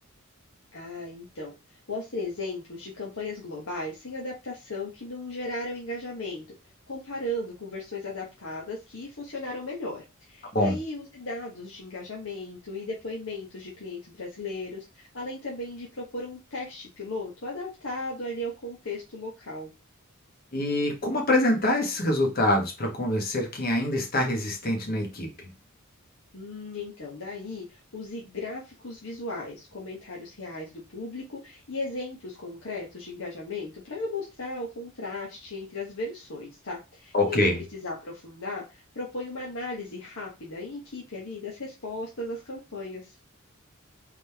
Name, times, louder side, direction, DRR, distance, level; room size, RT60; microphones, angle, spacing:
voice 1, 0.7-1.5 1.9-6.4 6.9-19.7 26.3-43.1, left 2 dB, 65° left, 1.1 m, -36 dB
voice 2, 20.5-25.3 37.1-37.6, left 1 dB, 45° left, 1.4 m, -25 dB
3.8 x 3.4 x 3.5 m
head